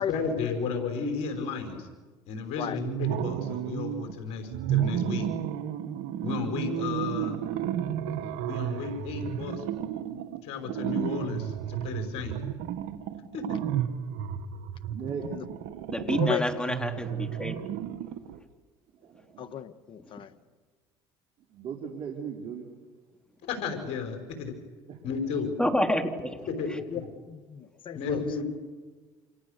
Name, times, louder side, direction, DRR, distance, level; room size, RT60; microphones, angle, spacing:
voice 1, 0.0-1.9 2.3-5.3 6.2-7.4 8.4-9.6 10.4-12.3 13.3-13.6 23.5-24.5 25.0-25.5 26.5-26.8 27.9-28.4, left 5 dB, 65° left, 5 dB, 5.4 m, -33 dB
sound 1, 2.8-4.1 4.5-18.4, right 10 dB, 80° right, 1.9 m, -32 dB
voice 2, 14.9-15.3 19.0-19.6 21.5-22.7 24.9-25.0, right 7 dB, 55° right, 1 dB, 4.0 m, -38 dB
voice 3, 15.9-17.6 25.6-26.4, left 1 dB, 5° left, 5 dB, 3.4 m, -28 dB
voice 4, 19.4-20.3 26.9-27.0 27.3-28.2, left 9 dB, 50° left, 10 dB, 1.5 m, -34 dB
29.0 x 28.0 x 6.8 m, 1.4 s
supercardioid pair, 85°, 11 cm